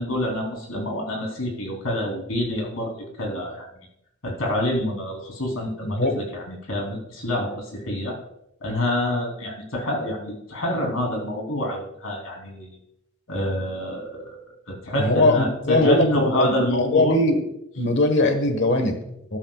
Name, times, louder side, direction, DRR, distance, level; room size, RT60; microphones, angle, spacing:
voice 1, 0.0-3.7 4.2-8.2 8.6-12.8 13.3-14.4 14.7-17.2, left 1 dB, 85° left, 1 dB, 3.3 m, -27 dB
voice 2, 15.0-17.4 17.7-19.4, left 2 dB, 55° left, 7 dB, 1.4 m, -20 dB
13.5 x 12.5 x 2.4 m, 0.79 s
head